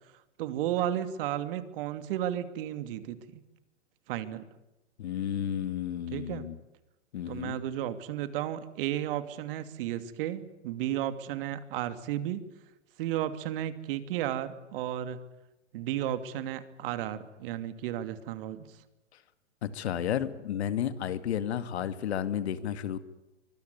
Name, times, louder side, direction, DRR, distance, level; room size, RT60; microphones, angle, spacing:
voice 1, 0.4-3.4 4.1-4.4 6.1-6.5 7.3-12.4 13.0-15.2 15.7-18.7, right 12 dB, 50° right, 11 dB, 2.6 m, -33 dB
voice 2, 5.0-6.5 7.1-7.6 19.6-23.0, left 9 dB, 65° left, 12 dB, 2.2 m, -32 dB
24.5 x 21.5 x 9.5 m, 0.96 s
hypercardioid pair, 120°, 35 cm